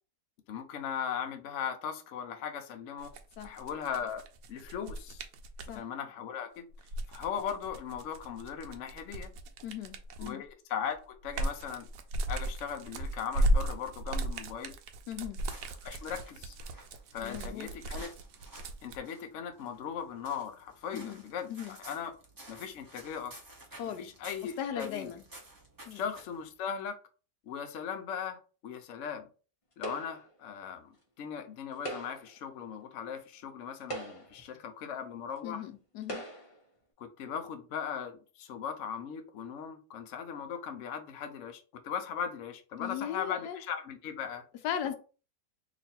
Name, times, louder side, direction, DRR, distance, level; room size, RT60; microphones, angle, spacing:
voice 1, 0.5-3.1 3.4-4.2 4.5-5.3 5.7-6.7 7.1-9.3 10.2-11.9 12.3-14.7 15.8-16.6 17.1-18.1 18.8-22.1 22.5-23.4 23.9-25.1 25.9-27.0 27.5-29.3 29.8-35.7 37.0-44.4, left 7 dB, 60° left, 0.8 m, -38 dB
sound 1, 3.0-5.8 6.7-10.5 10.9-19.0, right 1 dB, 75° right, 1.1 m, -35 dB
voice 2, 9.6-10.4 15.1-15.4 17.2-17.7 20.9-21.2 21.5-21.8 23.8-24.1 24.6-25.2 25.9-26.0 35.4-36.2 42.8-43.6 44.6-44.9, left 9 dB, 85° left, 1.2 m, -38 dB
sound 2, 15.4-26.5, right 1 dB, 25° right, 0.5 m, -53 dB
sound 3, 29.8-30.4 31.7-32.4 33.2-33.3 33.8-34.5 35.4-35.5 36.0-36.6, right 1 dB, 30° left, 0.6 m, -41 dB
3.0 x 2.6 x 4.2 m
omnidirectional pair, 1.8 m